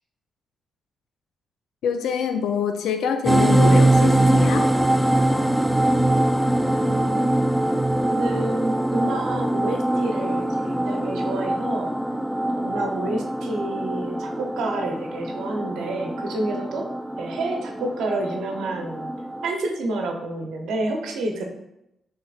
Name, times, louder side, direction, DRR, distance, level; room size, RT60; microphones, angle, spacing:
voice 1, 1.8-4.7, left 7 dB, 75° left, 7 dB, 0.4 m, -25 dB
sound 1, 3.3-19.5, right 1 dB, 5° right, 0.3 m, -22 dB
voice 2, 6.8-7.4 8.1-11.9 12.4-16.9 17.2-19.1 19.4-21.4, right 2 dB, 75° right, 2 dB, 0.7 m, -29 dB
6.2 x 3.1 x 2.4 m, 0.85 s
hypercardioid pair, 45°, 0 cm